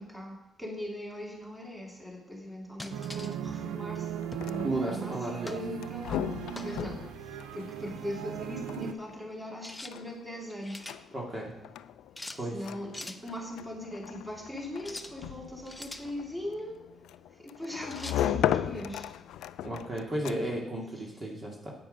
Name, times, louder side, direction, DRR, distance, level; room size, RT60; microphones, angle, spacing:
voice 1, 0.0-10.9 12.4-16.8 17.3-19.2 21.0-21.1, left 1 dB, 10° right, -1 dB, 2.7 m, -40 dB
sound 1, 2.8-3.4 4.3-4.6 5.5-5.7 6.6-6.8 9.6-9.9 10.4-11.0 12.2-12.4 12.9-13.2 14.8-15.1 15.6-16.1 17.9-18.2, left 2 dB, 10° left, 0.8 m, -43 dB
sound 2, 2.9-8.9, right 9 dB, 90° right, 0.6 m, -38 dB
sound 3, 4.2-20.7, left 11 dB, 85° left, 0.3 m, -37 dB
voice 2, 4.6-5.5 11.1-11.5 12.4-12.6 19.6-21.7, right 1 dB, 35° right, -2 dB, 2.4 m, -34 dB
8.8 x 8.7 x 5.3 m, 0.93 s
cardioid pair, 75°, 0 cm